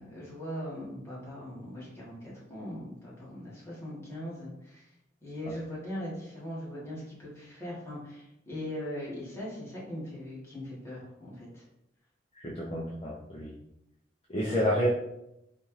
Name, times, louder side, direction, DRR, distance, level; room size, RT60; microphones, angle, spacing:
voice 1, 0.0-4.9 5.2-11.6, equal, 15° left, -7 dB, 1.4 m, -40 dB
voice 2, 12.4-13.6 14.3-14.9, equal, 30° left, -4 dB, 0.5 m, -29 dB
4.1 x 2.4 x 3.1 m, 0.86 s
head